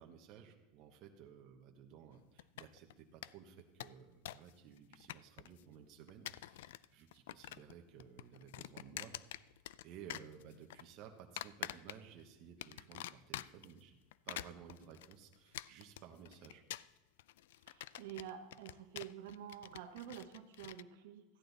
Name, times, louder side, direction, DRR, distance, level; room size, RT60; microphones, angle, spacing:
voice 1, 0.0-9.1 9.8-14.0 14.3-16.6, right 8 dB, 40° right, 3 dB, 1.0 m, -56 dB
sound 1, 2.4-2.9 3.2-3.3 3.6-4.5 4.8-5.6 6.1-6.9 7.1-7.7 8.0-9.8 10.1-10.8 11.4-12.2 12.6-13.7 14.1-20.8, left 14 dB, 85° left, 0.3 m, -47 dB
voice 2, 17.7-21.2, right 10 dB, 75° right, 7 dB, 1.2 m, -49 dB
14.0 x 10.0 x 4.0 m, 1.2 s
supercardioid pair, 160°, 0 cm